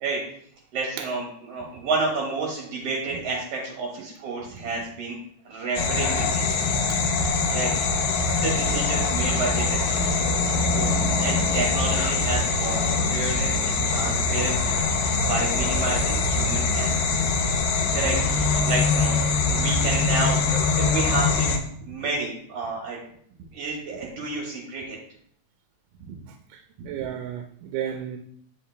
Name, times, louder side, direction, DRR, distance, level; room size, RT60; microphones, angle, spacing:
voice 1, 0.7-5.2 5.5-6.7 7.5-7.7 8.4-10.0 11.2-12.8 13.1-14.7 15.3-17.1 17.9-21.6 21.9-23.0 23.5-25.0 26.1-26.2, right 3 dB, 60° right, -2 dB, 1.9 m, -30 dB
sound 1, 5.8-21.6, left 4 dB, 85° left, 2.6 m, -23 dB
voice 2, 10.7-11.1 17.6-17.7 26.3-28.2, right 10 dB, 85° right, 5 dB, 2.1 m, -34 dB
8.5 x 5.0 x 3.3 m, 0.65 s
omnidirectional pair, 3.7 m